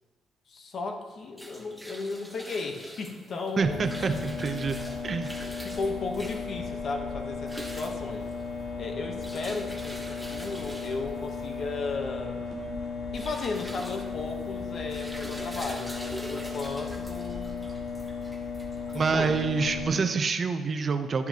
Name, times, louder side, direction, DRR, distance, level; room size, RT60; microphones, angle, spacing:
voice 1, 0.5-3.8 4.1-4.2 5.6-8.3 8.8-12.4 13.1-17.7 18.9-19.4, left 3 dB, 55° left, 4 dB, 0.9 m, -35 dB
sound 1, 1.1-19.6, right 1 dB, ahead, 1.0 m, -45 dB
sound 2, 3.6-19.9, left 5 dB, 80° left, 1.9 m, -36 dB
voice 2, 3.6-4.8 5.0-5.3 18.9-21.3, right 5 dB, 45° right, 8 dB, 0.6 m, -27 dB
10.5 x 5.8 x 2.8 m, 1.3 s
cardioid pair, 90°, 0 cm